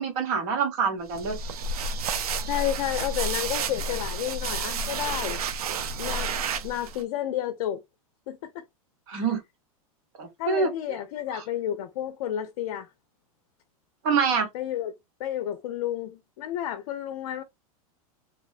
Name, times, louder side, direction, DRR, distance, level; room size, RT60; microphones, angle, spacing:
voice 1, 0.0-1.4 9.1-9.4 10.2-10.7 11.3-11.4 14.0-14.5, right 5 dB, 60° right, 1.2 m, -25 dB
sound 1, 1.1-7.0, right 4 dB, 85° right, 0.5 m, -30 dB
voice 2, 2.4-5.4 6.0-6.3 6.6-7.8 8.3-8.6 9.1-9.3 10.4-12.9 14.5-14.9 15.2-17.4, left 11 dB, 60° left, 0.5 m, -31 dB
2.8 x 2.0 x 2.4 m
hypercardioid pair, 110°, 19 cm